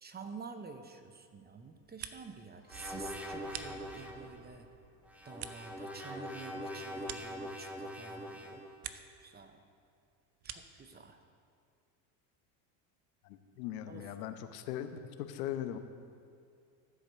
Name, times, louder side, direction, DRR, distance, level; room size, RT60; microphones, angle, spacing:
voice 1, 0.0-4.7 5.2-9.6 10.4-11.2 13.9-14.2, right 4 dB, 20° right, 8 dB, 0.7 m, -49 dB
sound 1, 1.7-2.5 2.8-4.3 4.7-8.0 8.3-9.2 9.5-10.9, right 11 dB, 55° right, 0.8 m, -49 dB
sound 2, 2.3-6.5, right 3 dB, 85° right, 2.4 m, -58 dB
sound 3, 2.7-4.3 5.1-8.7, equal, 5° right, 1.0 m, -43 dB
voice 2, 13.2-15.8, left 11 dB, 85° left, 9 dB, 0.9 m, -40 dB
13.5 x 5.2 x 6.8 m, 2.3 s
supercardioid pair, 100°, 49 cm